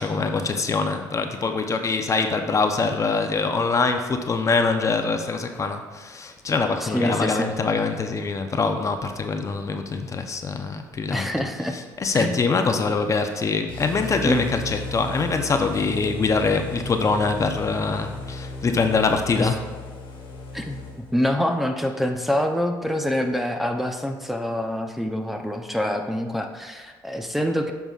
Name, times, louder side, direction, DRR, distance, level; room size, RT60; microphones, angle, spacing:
voice 1, 0.0-11.3 12.0-19.6, left 4 dB, 35° left, 6 dB, 0.6 m, -24 dB
voice 2, 6.8-7.5 11.1-11.7 12.1-12.4 14.2-14.5 19.4-19.5 20.5-20.8 21.1-27.7, equal, ahead, 3 dB, 0.6 m, -25 dB
sound 1, 13.7-21.3, left 2 dB, 80° left, 1.6 m, -35 dB
9.0 x 6.0 x 2.4 m, 1.4 s
cardioid pair, 85°, 9 cm